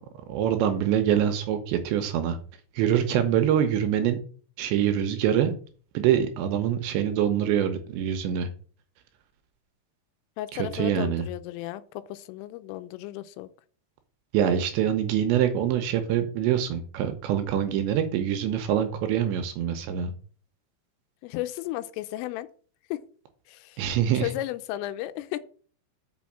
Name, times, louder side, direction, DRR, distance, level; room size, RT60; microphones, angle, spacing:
voice 1, 0.3-2.4 2.8-4.2 4.6-5.6 5.9-8.5 10.6-11.3 14.3-20.1 23.8-24.3, right 9 dB, 80° right, 2.9 m, -25 dB
voice 2, 10.4-13.5 21.2-22.5 22.9-23.0 23.5-23.8 24.1-25.4, left 15 dB, 85° left, 3.2 m, -34 dB
6.3 x 6.2 x 7.4 m
omnidirectional pair, 5.8 m